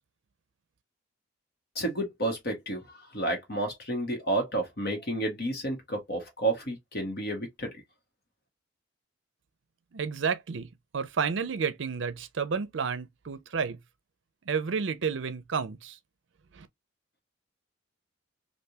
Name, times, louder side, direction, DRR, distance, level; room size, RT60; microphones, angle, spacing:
voice 1, 1.7-2.8 3.1-7.7, right 1 dB, 50° left, 1.4 m, -31 dB
voice 2, 9.9-10.7 10.9-13.8 14.5-16.0 16.5-16.7, right 6 dB, 65° right, 0.5 m, -31 dB
3.4 x 2.6 x 2.7 m
head